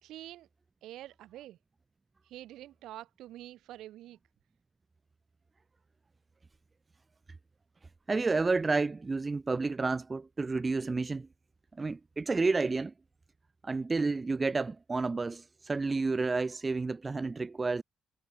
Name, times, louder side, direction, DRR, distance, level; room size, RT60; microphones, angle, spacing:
voice 1, 0.0-0.5 0.8-1.6 2.3-4.2, right 14 dB, 80° right, 3.3 m, -47 dB
voice 2, 8.1-11.3 11.8-12.9 13.6-17.8, right 3 dB, 25° right, 0.5 m, -30 dB
cardioid pair, 80°, 0 cm